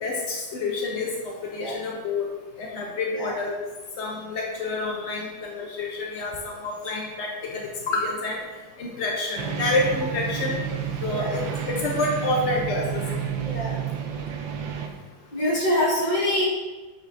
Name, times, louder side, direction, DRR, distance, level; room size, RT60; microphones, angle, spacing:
voice 1, 0.0-2.3 2.6-3.6 4.0-8.4 8.8-10.6 11.0-13.2, left 2 dB, 70° left, -1 dB, 0.6 m, -28 dB
sound 1, 9.4-14.9, right 8 dB, 80° right, 1.4 m, -30 dB
voice 2, 13.4-13.7 15.3-16.4, left 1 dB, 25° left, -7 dB, 2.0 m, -25 dB
8.4 x 4.5 x 2.6 m, 1.2 s
omnidirectional pair, 2.1 m